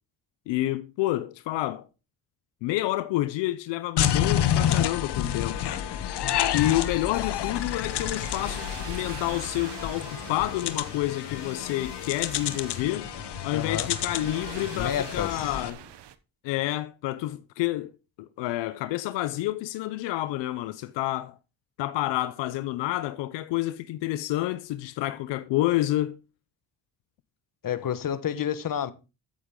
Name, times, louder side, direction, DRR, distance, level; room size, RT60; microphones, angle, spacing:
voice 1, 0.5-1.8 2.6-5.6 6.5-13.1 13.4-15.8 16.4-17.9 18.2-21.3 21.8-26.2, left 16 dB, 90° left, 0.7 m, -29 dB
sound 1, 4.0-15.7, left 10 dB, 70° left, 1.3 m, -29 dB
sound 2, 6.6-16.1, right 11 dB, 70° right, 1.2 m, -45 dB
voice 2, 13.5-13.9 14.7-15.5 27.6-28.9, left 9 dB, 50° left, 1.3 m, -29 dB
14.0 x 7.8 x 3.8 m
cardioid pair, 75°, 42 cm